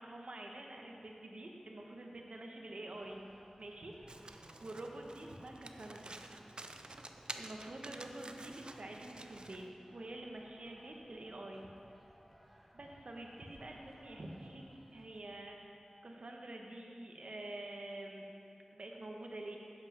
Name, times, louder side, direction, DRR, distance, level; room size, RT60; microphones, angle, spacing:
voice 1, 0.0-3.2 3.6-4.0 4.6-6.1 7.3-9.6 9.9-11.7 12.7-14.6 14.9-18.3 18.7-19.6, right 1 dB, 70° right, 1 dB, 1.1 m, -47 dB
sound 1, 2.9-15.2, equal, ahead, 1.0 m, -64 dB
Domestic sounds home sounds, 4.1-9.7, right 2 dB, 50° right, 0.5 m, -50 dB
8.7 x 7.3 x 5.7 m, 2.7 s
wide cardioid pair, 65°, 2 cm